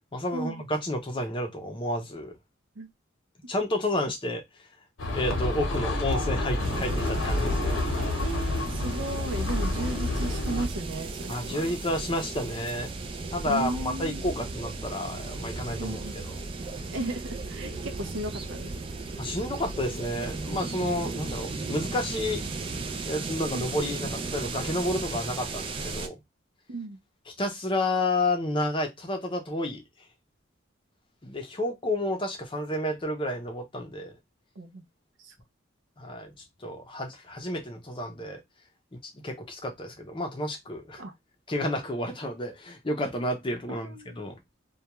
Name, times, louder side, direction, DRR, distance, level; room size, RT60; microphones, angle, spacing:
voice 1, 0.1-2.3 3.5-4.4 5.1-7.8 11.3-12.9 13.3-16.4 19.2-22.4 23.0-26.2 27.3-29.8 31.2-34.1 36.0-36.3 36.6-38.4 38.9-41.0 41.5-44.5, left 1 dB, 25° left, 0.6 m, -31 dB
sound 1, 5.0-10.7, left 2 dB, 75° left, 0.8 m, -29 dB
sound 2, 6.6-26.1, right 3 dB, 25° right, 0.3 m, -36 dB
voice 2, 8.2-11.8 13.5-14.2 15.8-16.2 16.9-18.7 23.5-23.7 26.7-27.0 34.6-34.8 35.2-35.3 41.0-41.1 43.7-44.2, right 2 dB, 75° right, 0.6 m, -35 dB
2.3 x 2.2 x 2.9 m
head